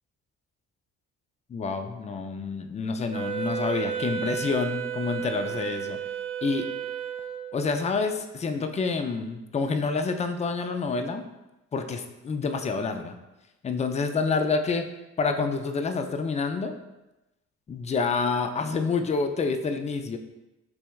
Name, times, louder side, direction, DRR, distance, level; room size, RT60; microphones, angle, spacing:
voice 1, 1.5-6.0 6.4-6.7 7.5-11.2 11.7-13.2 13.6-14.9 15.2-16.8 17.7-20.2, left 4 dB, 25° left, 7 dB, 0.4 m, -28 dB
Wind instrument woodwind instrument, 3.1-7.7, right 9 dB, 20° right, 0.7 m, -33 dB
5.9 x 3.3 x 2.3 m, 1.0 s
cardioid pair, 90°, 30 cm